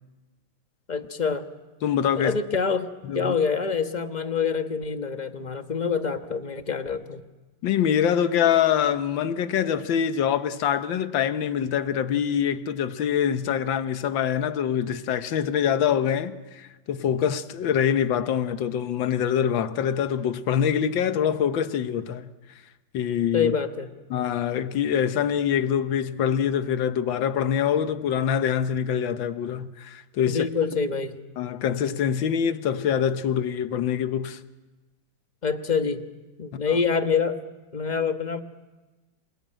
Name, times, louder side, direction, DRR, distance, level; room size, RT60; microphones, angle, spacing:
voice 1, 0.9-1.4 2.2-2.9 3.1-7.2 23.3-23.9 30.3-31.2 35.4-36.0 36.4-37.4 37.7-38.4, left 5 dB, 25° left, 1.0 m, -26 dB
voice 2, 1.8-2.4 3.0-3.3 7.6-22.3 22.9-23.5 24.1-30.5 31.4-34.4 36.7-36.8, left 8 dB, 70° left, 1.7 m, -24 dB
28.0 x 20.5 x 9.0 m
omnidirectional pair, 2.2 m